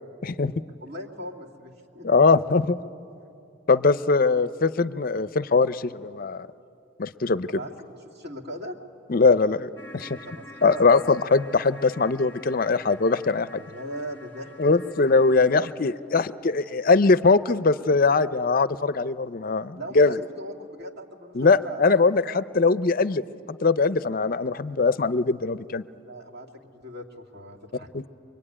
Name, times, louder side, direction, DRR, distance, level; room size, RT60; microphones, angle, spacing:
voice 1, 0.2-0.5 2.0-2.8 3.7-6.5 7.0-7.6 9.1-10.2 10.6-13.6 14.6-20.2 21.3-23.2 23.5-25.8 27.9-28.1, left 4 dB, 45° left, 15 dB, 0.6 m, -21 dB
voice 2, 0.8-2.1 7.5-7.7 8.0-8.8 10.2-10.9 13.6-14.8 15.3-15.7 19.7-22.4 26.0-27.9, equal, 55° right, 0 dB, 2.5 m, -39 dB
sound 1, 9.8-15.7, left 1 dB, 10° left, 1.7 m, -47 dB
25.0 x 23.0 x 9.9 m, 2.6 s
head